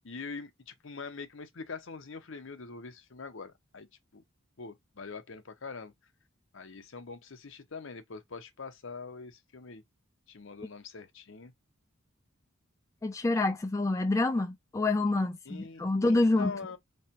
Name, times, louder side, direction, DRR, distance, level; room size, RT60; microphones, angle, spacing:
voice 1, 0.0-4.2 4.6-5.9 6.5-9.8 10.3-11.5 15.5-16.8, left 4 dB, 65° left, 0.8 m, -43 dB
voice 2, 13.0-16.5, left 2 dB, 15° left, 0.3 m, -27 dB
3.6 x 3.2 x 4.3 m
head